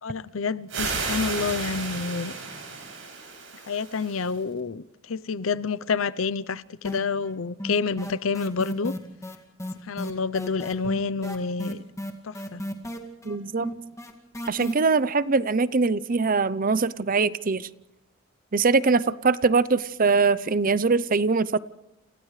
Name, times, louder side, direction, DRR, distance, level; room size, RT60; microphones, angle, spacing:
voice 1, 0.0-2.3 3.7-8.9 9.8-11.8 12.2-12.6, left 5 dB, 85° left, 0.7 m, -28 dB
sound 1, 0.7-4.4, right 4 dB, 70° right, 7.2 m, -33 dB
sound 2, 6.8-7.3 7.6-14.7, equal, 15° left, 2.2 m, -33 dB
voice 2, 13.2-13.7 14.5-17.7 18.5-21.6, right 4 dB, 45° right, 0.6 m, -22 dB
29.5 x 29.0 x 3.3 m
head